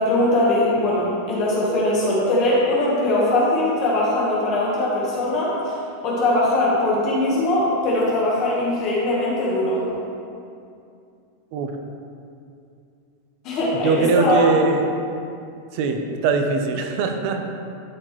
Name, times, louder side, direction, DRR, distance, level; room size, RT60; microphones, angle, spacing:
voice 1, 0.0-5.8 6.0-9.8 13.4-14.4, left 1 dB, 35° left, -6 dB, 1.3 m, -21 dB
voice 2, 13.8-14.9 15.7-17.4, right 4 dB, 45° right, 5 dB, 0.7 m, -21 dB
12.0 x 4.3 x 3.1 m, 2.5 s
supercardioid pair, 165°, 0 cm